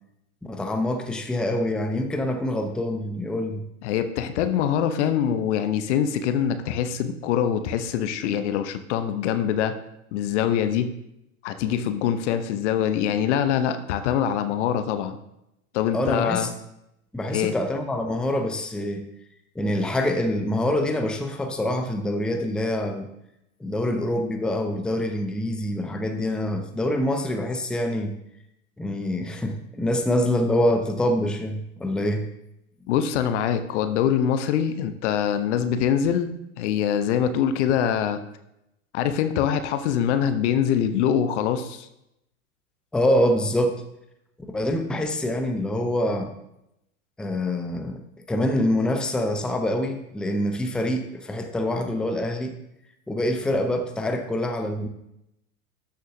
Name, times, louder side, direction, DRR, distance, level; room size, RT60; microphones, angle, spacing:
voice 1, 0.4-3.6 15.9-16.5 17.1-19.1 19.6-23.1 23.6-28.1 28.8-32.3 42.9-43.8 44.5-46.3 47.2-48.0 48.3-52.5 53.1-54.9, left 1 dB, ahead, 6 dB, 0.6 m, -25 dB
voice 2, 3.8-9.8 10.1-11.0 11.4-15.2 15.7-16.5 17.3-17.5 32.9-38.2 38.9-41.9, left 9 dB, 55° left, 9 dB, 0.9 m, -24 dB
13.0 x 6.4 x 2.7 m, 0.83 s
figure-of-eight pair, 95°, 43 cm